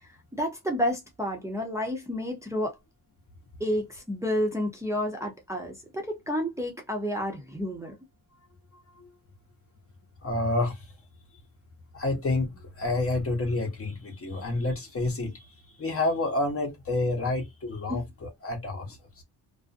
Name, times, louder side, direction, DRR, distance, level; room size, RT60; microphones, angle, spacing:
voice 1, 0.0-2.8 3.6-7.9 17.9-18.0, equal, 5° right, 0.6 m, -30 dB
voice 2, 10.2-10.8 11.9-15.4 15.8-19.0, left 2 dB, 35° left, 0.8 m, -29 dB
2.4 x 2.2 x 2.5 m
cardioid pair, 130°, 40 cm